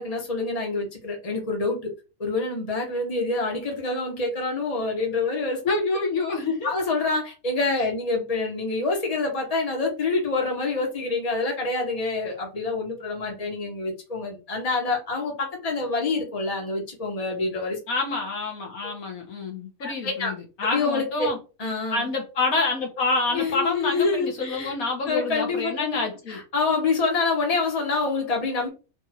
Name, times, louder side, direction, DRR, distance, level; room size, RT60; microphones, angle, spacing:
voice 1, 0.0-1.9 2.2-5.6 6.6-17.8 19.8-20.3 20.7-21.3 21.6-22.1 23.3-24.7 25.1-26.0 26.3-28.7, left 3 dB, 25° left, 1.3 m, -26 dB
voice 2, 5.6-6.7 7.8-7.9 17.9-21.4 21.9-26.4, left 3 dB, 85° left, 1.8 m, -27 dB
4.4 x 2.7 x 4.4 m
omnidirectional pair, 1.5 m